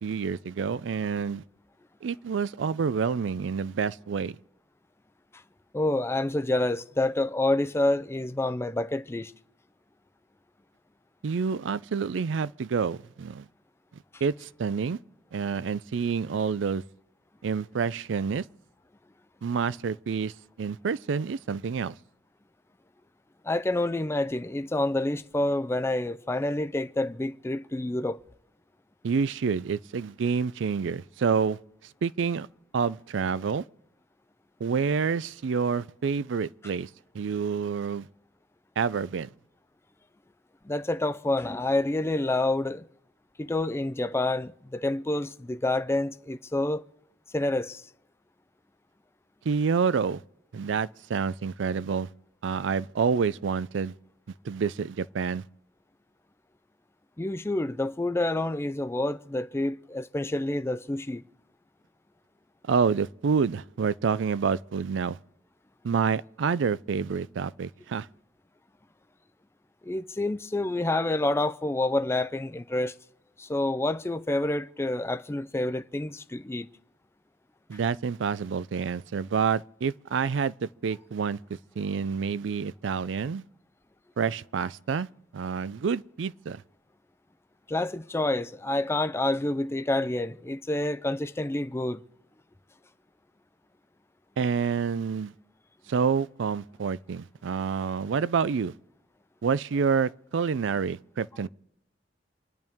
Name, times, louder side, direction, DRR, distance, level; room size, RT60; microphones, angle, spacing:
voice 1, 0.0-1.4 2.0-4.4 11.2-13.5 14.2-15.0 15.3-16.8 17.4-18.5 19.4-21.9 29.0-31.6 32.0-32.5 32.7-33.6 34.6-36.9 37.1-38.1 38.8-39.3 49.5-50.2 50.5-52.1 52.4-53.9 54.4-55.4 62.6-65.2 65.8-68.1 77.7-83.4 84.2-85.1 85.3-86.6 94.4-95.3 95.9-98.7 99.4-101.5, right 6 dB, 75° right, 0.4 m, -28 dB
voice 2, 5.7-9.3 23.4-28.2 40.6-42.9 43.4-46.8 47.3-47.8 57.2-61.2 69.8-73.0 73.4-76.7 87.7-92.0, left 2 dB, 15° left, 0.4 m, -28 dB
27.5 x 10.5 x 3.6 m
head